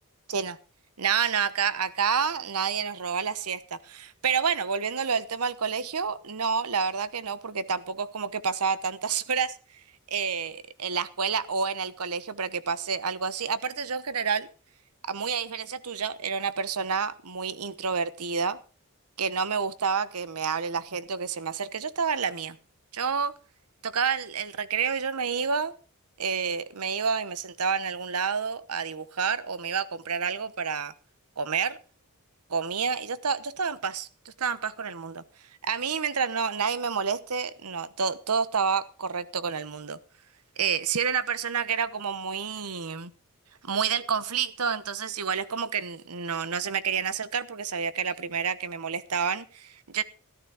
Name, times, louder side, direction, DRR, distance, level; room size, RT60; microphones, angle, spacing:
voice 1, 1.0-9.6 10.1-14.5 15.1-18.6 19.2-22.6 22.9-23.3 23.8-25.7 26.2-30.9 31.4-31.8 32.5-35.2 35.6-40.0 40.6-43.1 43.6-50.0, right 6 dB, 85° right, 1.0 m, -29 dB
14.0 x 12.5 x 4.9 m
head